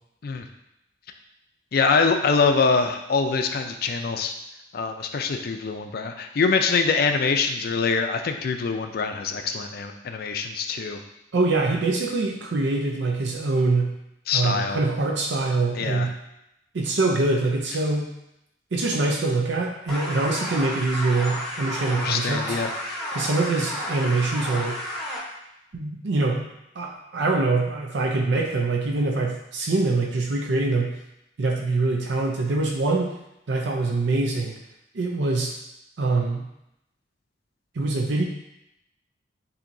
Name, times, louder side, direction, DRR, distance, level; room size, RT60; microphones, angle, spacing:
voice 1, 1.7-4.3 4.7-11.0 14.3-14.8 15.8-16.1 22.0-22.7, left 4 dB, 55° left, 6 dB, 0.4 m, -24 dB
voice 2, 11.3-13.9 14.3-16.2 16.7-18.1 18.7-22.6 23.1-24.8 25.7-26.5 26.8-31.0 31.4-33.1 33.5-34.6 34.9-35.5 36.0-36.4 37.8-38.2, right 3 dB, 75° right, 0 dB, 0.5 m, -24 dB
sound 1, 19.9-25.2, equal, 5° left, 0.9 m, -32 dB
7.3 x 2.8 x 2.6 m, 0.85 s
head